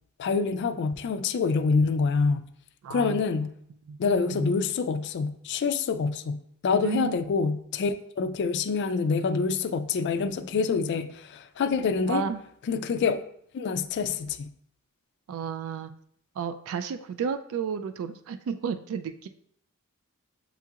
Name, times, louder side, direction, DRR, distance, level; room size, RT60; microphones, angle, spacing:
voice 1, 0.2-2.5 2.9-3.5 4.0-12.2 12.7-13.2 13.5-14.5, left 5 dB, 50° left, 10 dB, 0.3 m, -26 dB
voice 2, 2.8-3.2 3.9-4.0 4.3-4.5 6.8-7.2 12.1-12.4 15.3-15.9 16.4-19.3, right 6 dB, 65° right, 9 dB, 0.3 m, -32 dB
8.0 x 2.8 x 2.4 m, 0.66 s
head